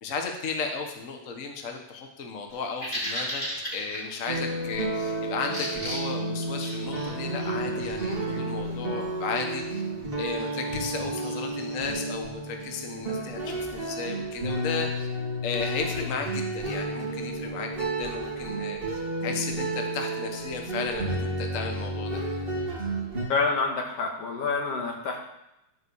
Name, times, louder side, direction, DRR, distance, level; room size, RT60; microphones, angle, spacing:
voice 1, 0.0-3.4 3.7-9.8 10.2-15.1 15.4-22.2, left 5 dB, 75° left, 3 dB, 0.7 m, -34 dB
Bird vocalization bird call bird song, 2.5-11.9, equal, 15° left, 2.4 m, -39 dB
sound 1, 4.3-23.2, right 2 dB, 20° right, 2.3 m, -31 dB
voice 2, 23.3-25.2, left 4 dB, 55° left, 1 dB, 2.4 m, -27 dB
12.0 x 5.1 x 7.0 m, 0.87 s
omnidirectional pair, 3.4 m